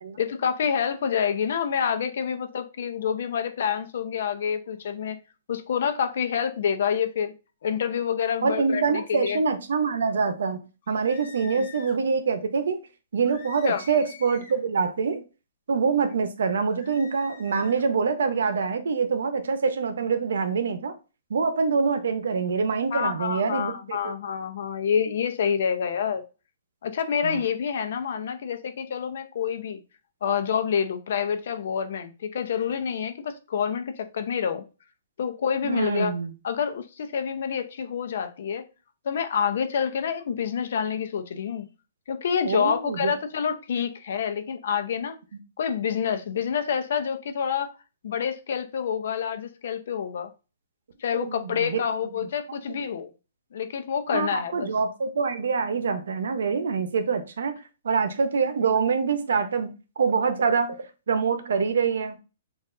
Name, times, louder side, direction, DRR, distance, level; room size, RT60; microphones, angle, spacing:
voice 1, 0.2-5.2 5.5-7.3 7.6-9.4 11.6-11.7 13.7-13.8 22.9-26.2 26.8-29.8 30.2-34.6 35.2-36.1 36.4-38.6 39.0-41.7 42.1-45.2 45.6-47.7 48.0-50.3 51.0-53.1 53.5-54.7, left 7 dB, 65° left, 0.7 m, -27 dB
voice 2, 8.4-10.6 10.9-12.8 13.1-15.2 15.7-20.9 21.3-24.0 27.2-27.4 35.6-36.3 42.4-43.1 51.1-51.8 52.1-52.3 52.7-52.9 54.1-57.6 57.8-60.8 61.1-62.2, right 5 dB, 80° right, 0.8 m, -25 dB
sound 1, 10.8-12.0 13.2-14.7 16.6-17.9, left 7 dB, 45° left, 1.2 m, -47 dB
6.4 x 2.6 x 2.6 m
hypercardioid pair, 160°, 0 cm